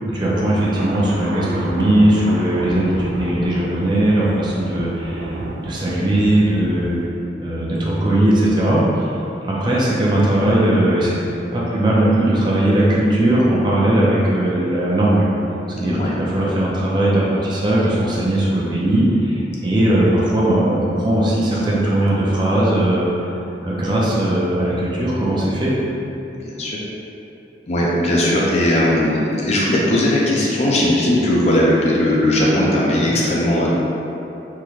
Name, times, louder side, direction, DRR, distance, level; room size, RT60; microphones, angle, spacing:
voice 1, 0.0-7.0 7.4-8.8 9.4-11.2 11.5-15.3 15.8-23.1 23.6-25.7, right 1 dB, 25° right, -6 dB, 0.5 m, -18 dB
sound 1, 0.6-7.1, right 2 dB, 85° right, 0.3 m, -31 dB
voice 2, 15.8-16.1 26.3-26.8 27.7-33.7, left 1 dB, 35° left, -5 dB, 0.4 m, -18 dB
3.6 x 2.1 x 3.0 m, 2.9 s
head